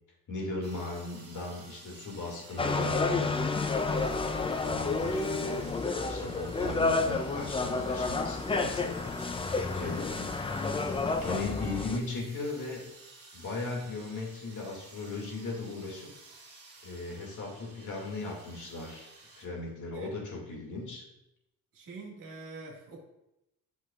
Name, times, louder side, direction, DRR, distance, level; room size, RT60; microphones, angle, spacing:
voice 1, 0.3-3.3 3.9-9.0 9.7-10.4 11.2-12.8 13.3-16.1 16.8-19.1 19.4-21.1, left 3 dB, 50° left, -1 dB, 2.2 m, -37 dB
sound 1, 0.6-19.5, right 3 dB, 40° right, 2.3 m, -53 dB
sound 2, 2.6-12.0, left 3 dB, 15° left, 0.4 m, -30 dB
voice 2, 6.6-7.0 9.5-10.0 19.9-20.1 21.7-23.0, right 3 dB, 55° right, -2 dB, 1.9 m, -46 dB
8.2 x 5.8 x 2.4 m, 0.88 s
cardioid pair, 105°, 38 cm